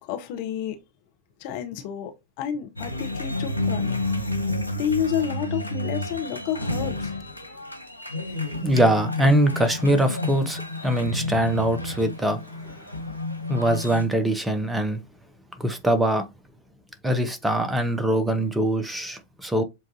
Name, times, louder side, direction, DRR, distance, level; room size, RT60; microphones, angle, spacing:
voice 1, 0.0-0.8 1.4-4.0 4.7-7.1 7.5-7.6, left 9 dB, 45° left, 0.8 m, -30 dB
sound 1, 2.8-14.0, left 2 dB, 90° right, 0.7 m, -30 dB
voice 2, 8.6-12.7 13.5-15.0 15.6-16.3 17.0-19.6, right 1 dB, 10° right, 0.8 m, -23 dB
7.3 x 2.6 x 2.6 m
figure-of-eight pair, 90°, 0 cm